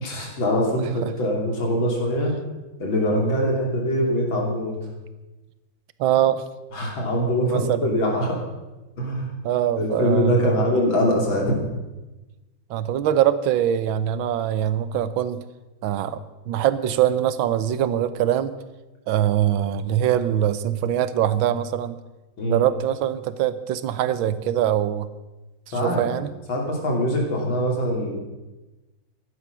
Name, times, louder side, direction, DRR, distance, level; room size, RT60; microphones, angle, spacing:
voice 1, 0.0-2.3 2.8-4.8 6.7-8.4 9.0-9.3 9.8-11.6 22.4-22.6 25.7-26.1 26.5-28.1, equal, 75° left, 0 dB, 3.9 m, -23 dB
voice 2, 6.0-6.4 7.5-7.9 9.4-10.7 12.7-15.4 15.8-18.5 19.1-22.0 22.5-25.1 25.7-26.3, right 11 dB, 80° right, 14 dB, 1.6 m, -23 dB
15.0 x 11.5 x 6.1 m, 1.1 s
omnidirectional pair, 2.2 m